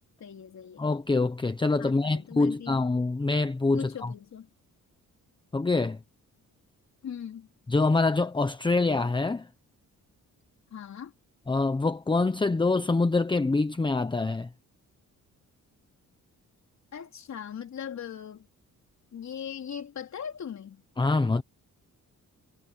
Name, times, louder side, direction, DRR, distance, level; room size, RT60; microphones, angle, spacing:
voice 1, 0.2-0.9 1.8-2.8 3.7-4.5 7.0-7.5 10.7-11.1 16.9-18.5 19.1-20.8, left 8 dB, 55° left, 4.0 m, -40 dB
voice 2, 0.8-4.1 5.5-6.0 7.7-9.5 11.5-14.5 21.0-21.4, left 3 dB, 15° left, 1.0 m, -25 dB
cardioid pair, 135°, 32 cm